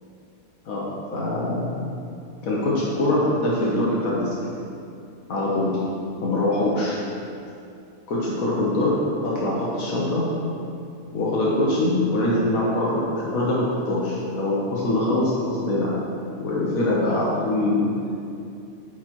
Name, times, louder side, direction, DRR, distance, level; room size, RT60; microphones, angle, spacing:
voice 1, 0.6-1.9 2.4-4.3 5.3-5.7 6.2-7.0 8.1-10.2 11.1-15.9 16.4-17.8, left 1 dB, 80° left, -6 dB, 1.4 m, -23 dB
8.6 x 6.4 x 3.0 m, 2.6 s
omnidirectional pair, 1.4 m